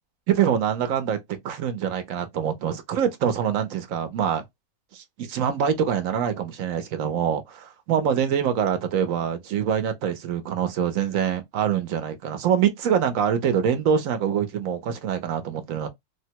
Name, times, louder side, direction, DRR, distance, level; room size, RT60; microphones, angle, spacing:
voice 1, 0.3-1.2 1.4-4.4 4.9-7.4 7.9-15.9, right 8 dB, 70° right, 1.0 m, -24 dB
3.3 x 2.1 x 2.8 m
omnidirectional pair, 1.6 m